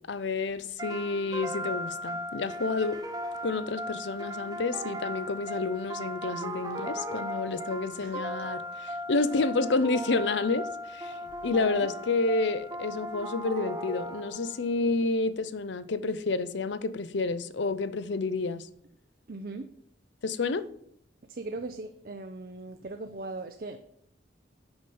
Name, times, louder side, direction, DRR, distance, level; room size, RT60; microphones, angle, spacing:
voice 1, 0.1-3.0 3.4-10.7 10.9-11.1 11.4-18.7 20.2-20.6, left 3 dB, 75° left, 0.6 m, -29 dB
sound 1, 0.8-14.6, equal, 20° right, 1.0 m, -37 dB
voice 2, 11.5-11.9 19.3-19.7 21.3-23.8, right 2 dB, 50° right, 0.6 m, -39 dB
8.7 x 5.4 x 6.9 m
head